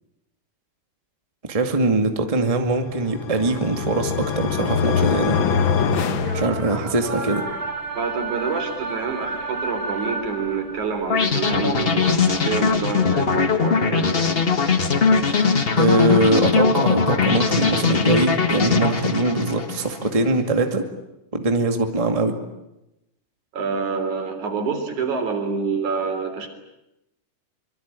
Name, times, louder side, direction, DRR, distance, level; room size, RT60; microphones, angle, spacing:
voice 1, 1.4-5.4 6.3-7.4 15.3-15.5 15.8-20.8 21.3-22.4, right 2 dB, 15° right, 5 dB, 1.8 m, -22 dB
sound 1, 2.8-7.1, left 6 dB, 55° left, 1.6 m, -24 dB
sound 2, 4.1-13.3, right 3 dB, 35° right, 3.0 m, -33 dB
voice 2, 7.9-14.3 23.5-26.5, right 5 dB, 75° right, 6 dB, 4.9 m, -27 dB
sound 3, 11.1-20.1, left 5 dB, 70° left, 0.5 m, -20 dB
25.0 x 24.5 x 9.1 m, 0.92 s
omnidirectional pair, 3.5 m